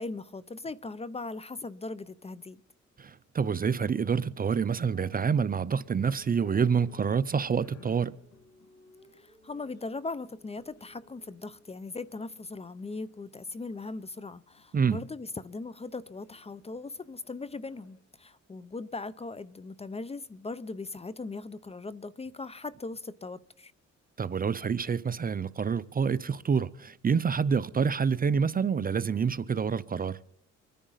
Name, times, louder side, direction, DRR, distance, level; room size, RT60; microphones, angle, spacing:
voice 1, 0.0-2.6 9.1-23.7, left 3 dB, 20° left, 0.6 m, -39 dB
voice 2, 3.0-8.2 14.7-15.0 24.2-30.2, right 6 dB, 30° right, 0.5 m, -27 dB
sound 1, 4.8-18.1, left 5 dB, 60° left, 2.3 m, -61 dB
Female singing, 6.0-11.7, right 1 dB, 40° left, 6.2 m, -61 dB
25.0 x 10.5 x 4.0 m
cardioid pair, 90°, 30 cm